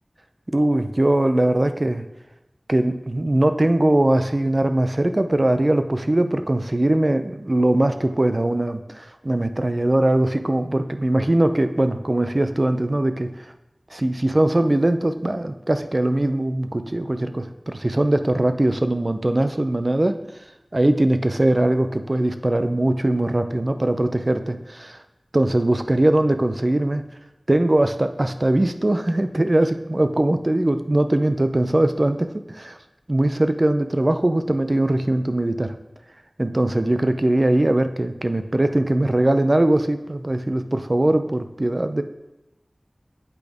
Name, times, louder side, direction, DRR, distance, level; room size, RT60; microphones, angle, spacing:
voice 1, 0.5-2.0 2.7-13.3 13.9-20.2 20.7-25.0 25.3-27.0 27.5-32.8 33.1-35.7 36.4-42.0, right 1 dB, 45° right, 8 dB, 0.5 m, -21 dB
8.3 x 5.1 x 3.5 m, 0.91 s
wide cardioid pair, 45°, 0 cm